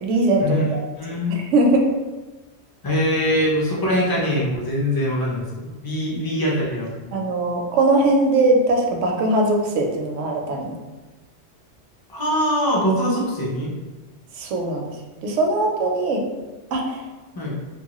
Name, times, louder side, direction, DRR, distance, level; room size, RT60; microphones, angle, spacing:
voice 1, 0.0-0.8 1.1-1.9 7.1-10.7 14.3-15.0 15.2-16.3 16.7-17.0, right 2 dB, 80° right, 1 dB, 0.9 m, -20 dB
voice 2, 1.0-1.3 2.8-7.1 12.1-13.7 17.4-17.6, equal, 35° left, -4 dB, 0.4 m, -23 dB
2.9 x 2.3 x 2.9 m, 1.2 s
omnidirectional pair, 1.3 m